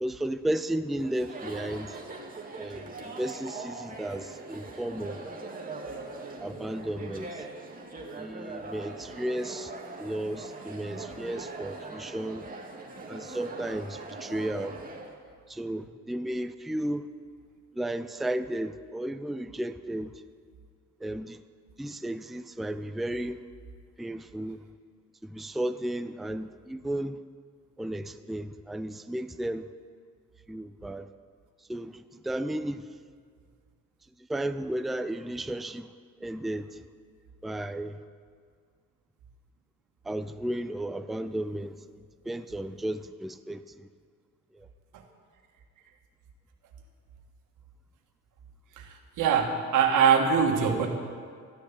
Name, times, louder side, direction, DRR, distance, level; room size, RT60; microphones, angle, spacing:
voice 1, 0.0-2.0 2.6-5.2 6.4-7.5 8.2-9.7 10.0-12.4 13.1-14.8 15.5-17.1 17.7-20.1 21.0-21.4 21.8-23.4 24.0-24.6 25.2-27.2 27.8-29.7 30.5-31.1 31.7-32.9 34.3-35.9 36.2-36.8 37.4-38.0 40.0-41.8 42.2-43.6 44.5-44.7, right 1 dB, ahead, 10 dB, 0.4 m, -34 dB
Chatter, 1.0-15.1, right 3 dB, 30° right, 2.1 m, -41 dB
voice 2, 49.2-50.9, right 6 dB, 90° right, 3 dB, 1.7 m, -23 dB
14.0 x 6.8 x 9.5 m, 2.1 s
cardioid pair, 90°, 30 cm